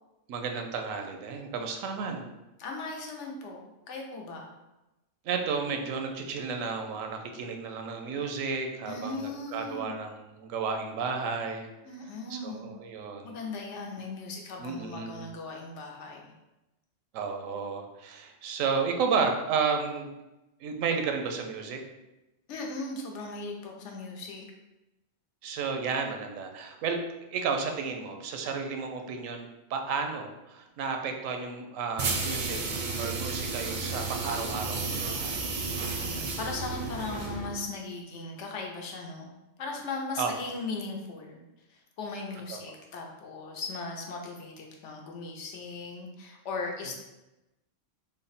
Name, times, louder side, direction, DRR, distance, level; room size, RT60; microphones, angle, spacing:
voice 1, 0.3-2.3 5.2-11.7 12.3-13.4 14.6-15.3 17.1-20.1 20.6-21.8 25.4-27.0 27.3-32.6 33.0-35.4 36.0-36.3 40.2-40.3 42.5-42.6, right 5 dB, 90° right, 4 dB, 1.0 m, -32 dB
voice 2, 2.6-4.5 8.9-10.0 11.8-12.6 13.2-16.3 22.5-24.5 36.0-39.3 39.6-41.4 41.7-47.0, left 3 dB, 70° left, 1 dB, 0.9 m, -38 dB
sound 1, 32.0-37.6, right 3 dB, 55° right, 0.5 m, -32 dB
3.4 x 2.1 x 4.0 m, 0.98 s
omnidirectional pair, 1.3 m